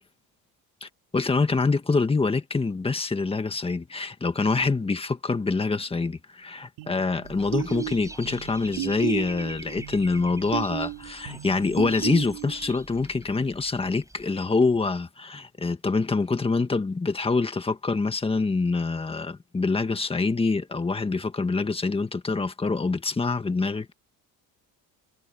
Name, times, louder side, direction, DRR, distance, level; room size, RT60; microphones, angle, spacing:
voice 1, 0.8-23.9, left 3 dB, 15° left, 1.6 m, -25 dB
sound 1, 6.8-12.7, right 18 dB, 75° right, 4.7 m, -34 dB
Dog / Bird, 7.2-14.3, right 2 dB, 10° right, 7.9 m, -45 dB
cardioid pair, 140°, 40 cm